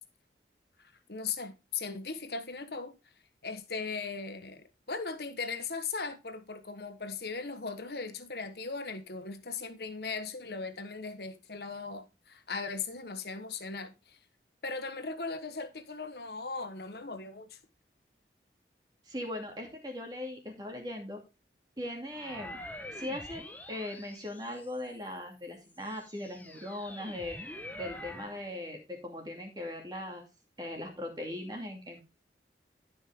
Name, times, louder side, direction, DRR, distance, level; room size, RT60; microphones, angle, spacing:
voice 1, 0.8-2.9 3.4-14.2 14.6-17.6, left 4 dB, 65° left, 1.3 m, -38 dB
voice 2, 19.1-21.2 21.8-22.6 22.9-23.4 23.7-27.4 27.7-30.3 30.6-32.0, left 1 dB, 25° right, 2.5 m, -39 dB
sound 1, 22.1-25.0 25.6-28.5, left 1 dB, 10° left, 1.0 m, -45 dB
12.5 x 5.5 x 3.6 m
head